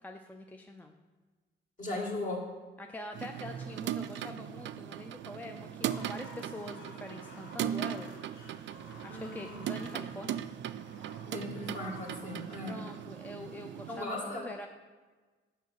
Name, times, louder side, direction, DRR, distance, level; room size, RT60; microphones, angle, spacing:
voice 1, 0.0-0.9 2.8-8.1 9.0-10.4 12.6-14.7, left 1 dB, 10° left, 3 dB, 0.5 m, -44 dB
voice 2, 1.8-2.4 9.1-9.6 11.2-12.8 13.9-14.5, left 2 dB, 40° left, -1 dB, 2.3 m, -37 dB
sound 1, 3.1-14.0, right 10 dB, 70° right, 0.4 m, -39 dB
sound 2, 5.6-13.8, left 2 dB, 90° left, 1.9 m, -54 dB
6.9 x 5.5 x 5.9 m, 1.3 s
cardioid pair, 90°, 20 cm